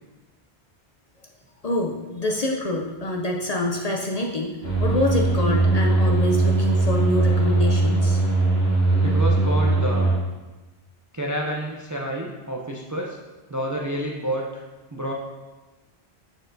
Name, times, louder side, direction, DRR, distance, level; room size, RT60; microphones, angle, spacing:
voice 1, 1.6-8.2, left 1 dB, 50° left, 0 dB, 0.5 m, -26 dB
sound 1, 4.6-10.1, right 2 dB, 70° left, 2.4 m, -20 dB
voice 2, 9.0-10.2 11.1-13.2 13.5-14.6 14.9-15.1, right 1 dB, 30° right, -1 dB, 0.3 m, -29 dB
6.4 x 6.1 x 2.6 m, 1.2 s
omnidirectional pair, 1.1 m